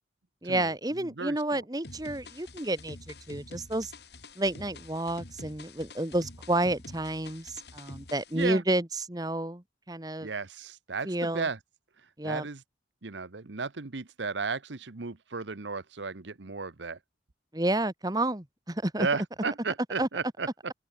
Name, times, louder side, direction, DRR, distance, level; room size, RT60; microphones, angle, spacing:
voice 1, 0.4-3.9 4.4-10.3 11.0-11.5 12.2-12.5 17.5-19.1 20.0-20.1, right 1 dB, 20° right, 1.4 m, -30 dB
voice 2, 1.0-1.6 8.3-8.6 10.2-11.6 12.2-12.6 13.0-17.0 19.0-20.5, right 4 dB, 75° right, 1.0 m, -34 dB
sound 1, 1.8-8.5, left 2 dB, 60° left, 4.9 m, -47 dB
open air
head